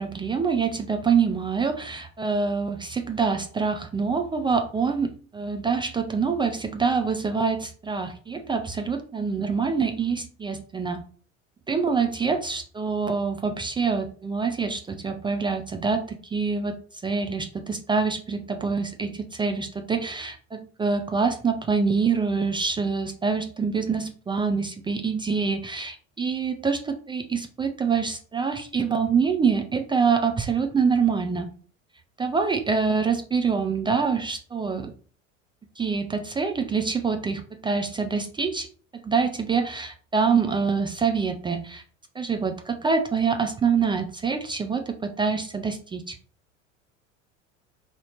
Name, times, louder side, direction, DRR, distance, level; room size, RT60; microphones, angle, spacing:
voice 1, 0.0-11.0 11.7-31.5 32.2-34.9 35.8-38.7 38.9-41.8 42.2-46.2, right 5 dB, 15° right, 5 dB, 0.4 m, -25 dB
4.2 x 2.8 x 4.0 m, 0.42 s
figure-of-eight pair, 70°, 38 cm